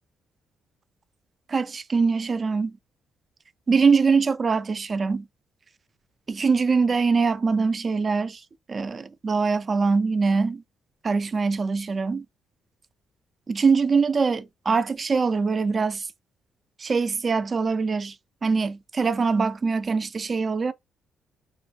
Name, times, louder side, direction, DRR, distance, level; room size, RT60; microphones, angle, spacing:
voice 1, 1.5-2.7 3.7-5.2 6.3-8.4 8.7-10.6 11.0-12.2 13.5-16.1 16.8-18.1 18.4-20.7, right 4 dB, 35° right, 0.3 m, -23 dB
2.6 x 2.2 x 3.5 m
cardioid pair, 90°, 0 cm